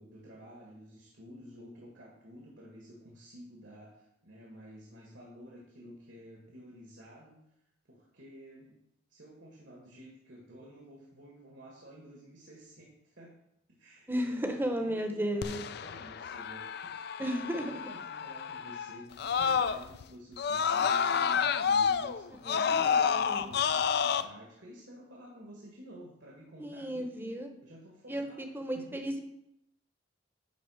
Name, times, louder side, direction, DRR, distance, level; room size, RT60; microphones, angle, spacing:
voice 1, 0.0-7.4 7.9-8.7 9.1-13.3 13.7-27.3 27.6-28.5 28.7-29.0, equal, 70° right, -2 dB, 1.8 m, -52 dB
voice 2, 14.1-15.6 17.2-17.9 22.4-23.5 26.6-27.5 28.1-29.2, equal, 10° right, 4 dB, 0.8 m, -34 dB
Screaming, 15.4-20.0 20.4-24.2, left 6 dB, 55° left, 0.4 m, -29 dB
10.0 x 3.9 x 6.4 m, 0.83 s
head